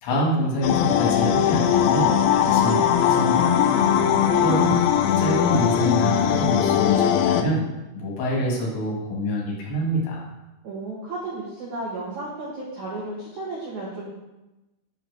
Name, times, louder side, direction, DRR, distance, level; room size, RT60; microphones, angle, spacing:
voice 1, 0.0-3.6 4.4-4.8 5.2-7.6 8.0-10.2, equal, 65° left, -3 dB, 3.9 m, -26 dB
sound 1, 0.6-7.4, left 9 dB, 80° left, 2.6 m, -20 dB
voice 2, 3.7-4.5 10.6-14.1, right 2 dB, 65° right, -5 dB, 1.9 m, -33 dB
9.2 x 5.9 x 6.3 m, 1.0 s
omnidirectional pair, 5.9 m